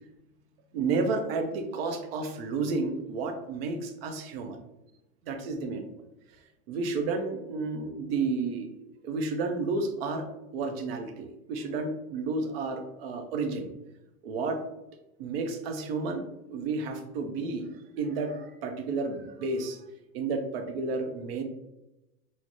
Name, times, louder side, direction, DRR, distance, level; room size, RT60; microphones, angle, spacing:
voice 1, 0.7-4.6 5.2-5.9 6.7-8.7 9.0-13.7 14.2-14.6 15.2-17.7 18.0-19.9 20.1-21.4, right 3 dB, 40° right, 5 dB, 0.4 m, -31 dB
3.3 x 2.0 x 2.6 m, 0.94 s
hypercardioid pair, 115°, 48 cm